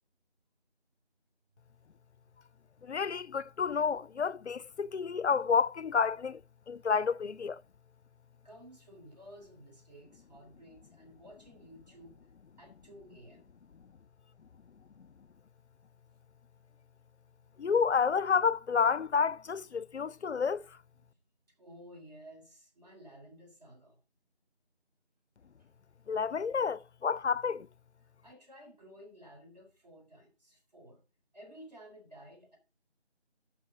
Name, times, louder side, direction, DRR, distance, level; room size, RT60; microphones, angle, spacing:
voice 1, 2.8-6.4 6.7-7.6 17.6-20.6 26.1-27.7, left 6 dB, 80° left, 0.5 m, -30 dB
voice 2, 8.4-12.3 12.6-13.5 21.0-21.1 21.6-24.0 28.0-31.0 31.3-32.6, equal, 35° right, 3.8 m, -54 dB
11.0 x 6.3 x 4.8 m
figure-of-eight pair, 165°, 34 cm